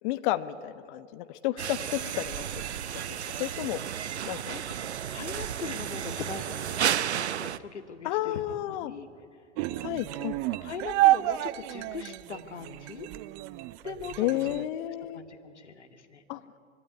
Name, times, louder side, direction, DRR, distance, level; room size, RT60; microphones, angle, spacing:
voice 1, 0.0-2.4 3.1-3.8 4.3-4.6 8.0-8.9 9.7-10.4 14.2-15.2 16.3-16.4, left 15 dB, 45° left, 12 dB, 1.2 m, -31 dB
sound 1, 1.6-7.6, right 9 dB, 70° right, 0.9 m, -32 dB
voice 2, 4.3-4.6 5.1-9.1 10.6-13.1 13.8-14.6 15.1-16.2, left 5 dB, 80° left, 6 dB, 2.0 m, -41 dB
sound 2, 9.6-14.6, right 16 dB, 35° right, 0.6 m, -29 dB
25.5 x 21.5 x 9.8 m, 2.4 s
figure-of-eight pair, 95°, 34 cm